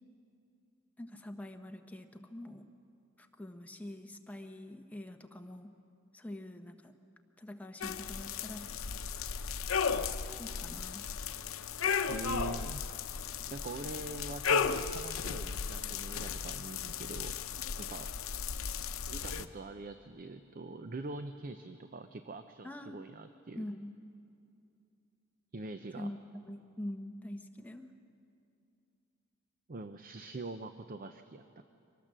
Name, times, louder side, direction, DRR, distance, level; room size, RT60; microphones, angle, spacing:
voice 1, 1.0-2.7 3.2-5.7 6.1-6.9 7.4-8.7 10.2-11.1 22.6-23.0 23.5-23.9 26.0-26.2 26.5-27.9, left 1 dB, 5° left, 4 dB, 1.1 m, -45 dB
sound 1, 7.8-19.4, left 6 dB, 80° left, 0.8 m, -35 dB
voice 2, 12.1-12.8 13.5-17.4 17.8-18.1 19.1-23.6 25.5-26.1 29.7-31.6, right 2 dB, 45° right, 9 dB, 0.7 m, -43 dB
24.5 x 18.5 x 7.5 m, 2.6 s
head